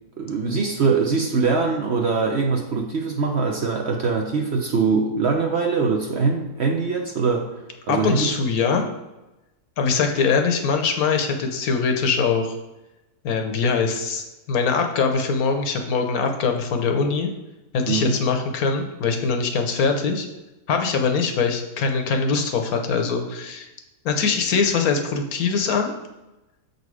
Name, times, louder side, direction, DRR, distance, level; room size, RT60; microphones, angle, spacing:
voice 1, 0.2-7.5 7.9-8.3 17.9-18.1, right 4 dB, 55° right, 1 dB, 0.8 m, -22 dB
voice 2, 7.9-8.8 9.8-12.6 13.2-17.3 17.7-20.3 20.7-23.7 24.0-25.9, left 5 dB, 70° left, 4 dB, 1.2 m, -22 dB
6.6 x 4.1 x 4.7 m, 1.0 s
omnidirectional pair, 1.7 m